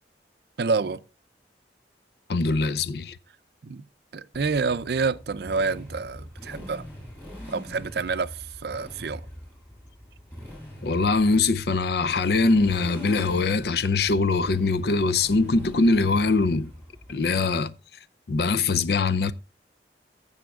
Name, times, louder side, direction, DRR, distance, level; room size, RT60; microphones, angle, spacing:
voice 1, 0.6-1.0 3.6-3.8 4.1-6.9 7.5-9.3, right 4 dB, 65° right, 0.5 m, -28 dB
voice 2, 2.3-3.2 10.8-16.7 17.1-17.7 18.3-19.3, left 3 dB, 65° left, 0.5 m, -22 dB
Motorcycle, 4.3-17.2, equal, 10° left, 7.0 m, -43 dB
20.0 x 7.1 x 2.3 m
head